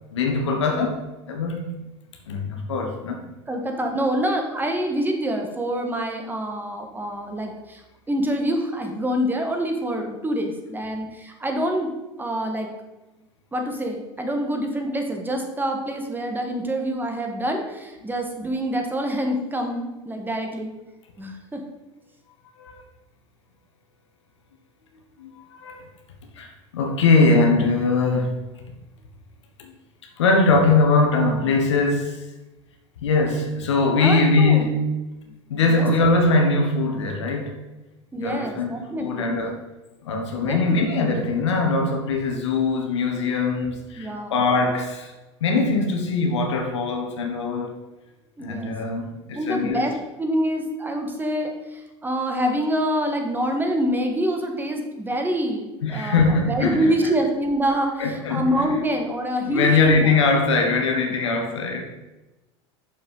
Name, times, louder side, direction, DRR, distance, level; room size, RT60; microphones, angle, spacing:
voice 1, 0.1-1.7 2.3-3.2 22.6-22.8 25.2-25.8 26.4-28.4 29.6-29.7 30.2-32.2 33.0-34.7 35.5-37.6 38.2-39.6 40.0-45.1 45.4-47.8 48.4-49.8 55.8-56.9 58.0-58.7 59.5-61.8, left 3 dB, 90° left, 1.5 m, -21 dB
voice 2, 3.5-11.9 12.2-12.7 13.5-20.7 21.2-21.7 34.0-34.7 35.7-35.8 38.1-39.3 40.4-40.8 44.0-44.4 48.4-48.7 49.3-60.1, equal, 15° right, 1.5 m, -26 dB
6.7 x 5.5 x 5.4 m
hypercardioid pair, 95°, 15 cm